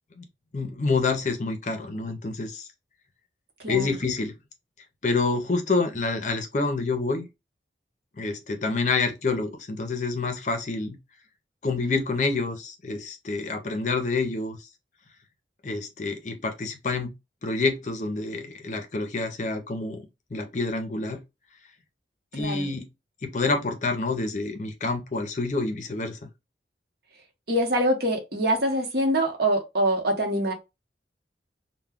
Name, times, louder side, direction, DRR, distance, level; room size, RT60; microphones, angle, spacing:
voice 1, 0.5-2.7 3.7-4.3 5.0-7.3 8.2-11.0 11.6-14.6 15.6-17.1 17.4-20.0 20.3-21.2 22.3-22.9 23.2-26.2, left 3 dB, 45° left, 0.5 m, -27 dB
voice 2, 22.3-22.7 27.5-30.5, right 1 dB, 60° right, 0.9 m, -24 dB
2.2 x 2.1 x 3.4 m
head